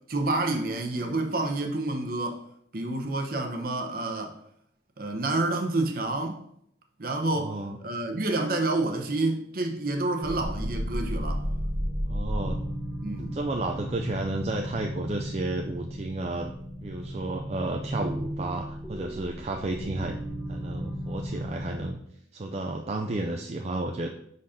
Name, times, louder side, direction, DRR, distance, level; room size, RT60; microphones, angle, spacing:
voice 1, 0.1-2.4 2.7-4.4 5.0-6.4 7.0-7.5 7.8-11.4 13.0-13.3, right 2 dB, 50° right, 0.8 m, -28 dB
voice 2, 7.4-7.8 12.1-12.6 13.3-16.5 16.8-20.2 20.5-22.0 22.3-24.1, right 2 dB, 35° right, 0.4 m, -32 dB
sound 1, 10.2-21.9, equal, 15° right, 1.3 m, -34 dB
5.7 x 4.0 x 5.0 m
head